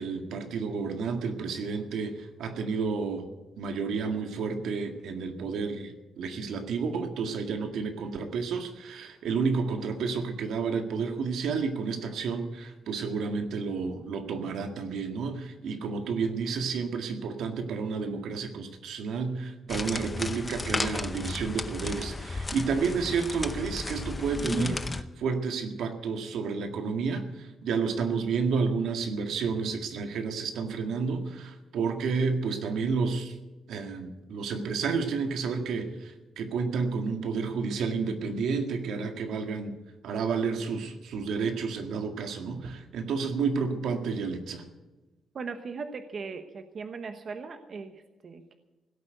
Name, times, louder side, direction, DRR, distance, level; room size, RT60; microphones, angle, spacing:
voice 1, 0.0-3.3 3.6-33.4 33.7-39.7 40.0-44.7, right 5 dB, 85° right, 5 dB, 1.9 m, -31 dB
sound 1, 19.7-25.0, left 2 dB, 20° left, 0.7 m, -34 dB
voice 2, 45.3-48.6, right 5 dB, 45° right, 7 dB, 1.0 m, -39 dB
16.5 x 8.5 x 9.2 m, 1.1 s
cardioid pair, 145°, 0 cm